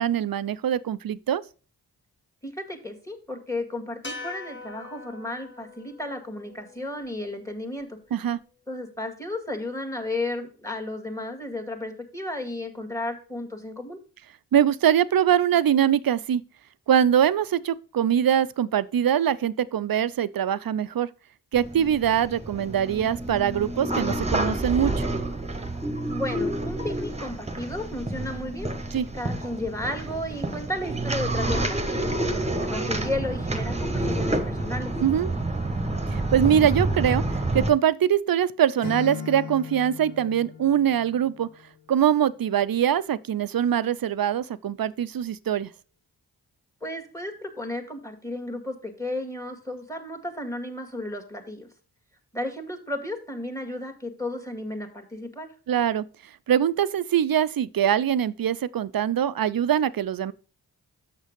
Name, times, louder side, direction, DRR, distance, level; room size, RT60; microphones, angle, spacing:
voice 1, 0.0-1.4 8.1-8.4 14.5-16.4 16.9-21.1 21.5-25.0 28.9-29.1 35.0-35.3 36.1-37.2 37.5-41.5 41.9-45.7 55.7-56.0 56.5-60.3, right 9 dB, 55° right, 0.6 m, -23 dB
voice 2, 2.4-8.0 8.7-14.0 26.1-28.7 29.1-34.9 46.8-51.7 52.3-55.5, left 1 dB, 10° left, 1.9 m, -33 dB
sound 1, 4.0-8.4, left 3 dB, 25° left, 1.5 m, -43 dB
sound 2, 21.5-37.7, right 2 dB, 15° right, 1.2 m, -29 dB
Acoustic guitar / Strum, 38.8-41.9, left 6 dB, 85° left, 2.6 m, -38 dB
6.5 x 6.1 x 5.2 m
cardioid pair, 40°, 41 cm